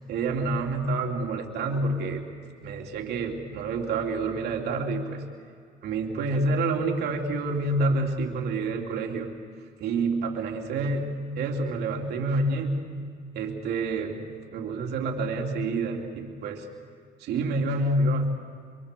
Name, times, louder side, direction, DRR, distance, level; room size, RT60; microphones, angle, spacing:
voice 1, 0.1-2.2 2.6-5.2 5.8-9.3 9.8-12.9 13.3-16.7 17.2-18.3, right 2 dB, 75° right, 2 dB, 3.0 m, -28 dB
26.0 x 24.0 x 6.8 m, 2.2 s
cardioid pair, 110°, 17 cm